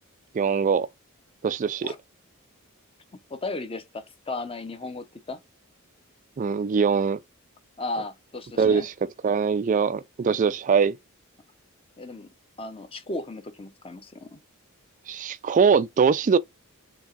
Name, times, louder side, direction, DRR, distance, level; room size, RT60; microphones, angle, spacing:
voice 1, 0.3-0.9 1.4-1.9 6.4-7.2 8.6-8.9 9.2-11.0 15.1-16.4, right 6 dB, 35° right, 0.3 m, -22 dB
voice 2, 3.3-5.4 7.8-8.8 12.0-12.3 12.6-14.4, left 2 dB, 25° left, 0.8 m, -35 dB
7.0 x 2.9 x 2.4 m
head